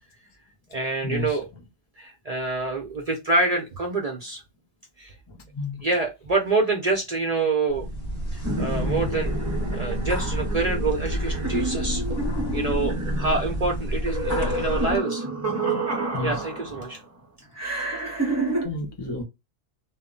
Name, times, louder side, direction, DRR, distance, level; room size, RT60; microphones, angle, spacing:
voice 1, 0.7-1.5 2.0-4.4 5.0-5.1 5.8-7.9 8.3-9.3 9.7-12.2 12.5-15.3 16.2-17.0, right 3 dB, 50° right, 0.5 m, -26 dB
sound 1, 7.7-15.0, equal, 55° left, 1.2 m, -29 dB
sound 2, 8.4-17.0 17.6-18.7, right 2 dB, 15° right, 0.7 m, -29 dB
voice 2, 12.1-12.6 16.1-16.3 18.6-19.2, left 3 dB, 35° left, 0.4 m, -31 dB
2.1 x 2.0 x 3.7 m
omnidirectional pair, 1.2 m